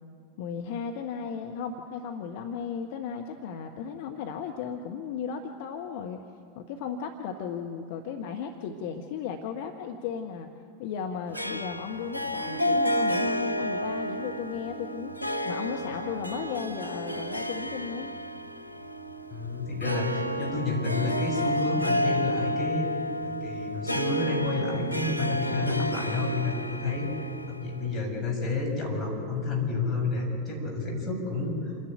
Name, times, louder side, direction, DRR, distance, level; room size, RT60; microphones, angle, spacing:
voice 1, 0.4-6.2 6.5-10.5 10.8-18.1, left 6 dB, 50° left, 4 dB, 1.2 m, -35 dB
Harp, 11.3-28.1, equal, 90° right, 0.8 m, -31 dB
voice 2, 19.3-22.9 23.2-27.1 27.5-31.7, left 3 dB, 20° left, -2 dB, 6.9 m, -30 dB
28.0 x 11.0 x 9.2 m, 2.5 s
figure-of-eight pair, 85°, 0 cm